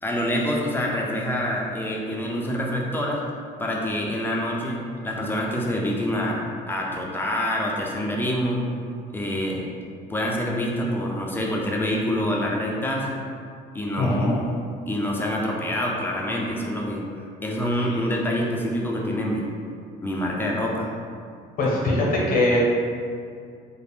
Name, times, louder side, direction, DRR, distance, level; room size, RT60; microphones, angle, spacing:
voice 1, 0.0-3.2 3.6-8.6 9.1-9.7 10.1-13.2 13.7-14.5 14.9-19.5 20.0-20.9, equal, 10° left, -2 dB, 0.4 m, -26 dB
voice 2, 14.0-14.3 17.9-18.0 21.6-22.6, left 2 dB, 55° left, -4 dB, 0.8 m, -21 dB
2.4 x 2.0 x 3.4 m, 2.2 s
cardioid pair, 110°, 17 cm